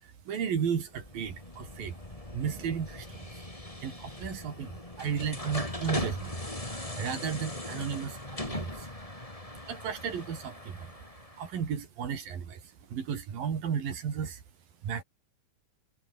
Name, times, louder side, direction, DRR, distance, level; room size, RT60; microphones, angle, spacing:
voice 1, 0.0-2.0 2.3-3.4 3.8-6.4 6.7-8.9 9.7-11.0 11.4-14.4 14.8-15.0, right 7 dB, 80° right, 5.0 m, -34 dB
sound 1, 0.9-11.6, left 1 dB, 10° left, 4.2 m, -40 dB
omnidirectional pair, 4.0 m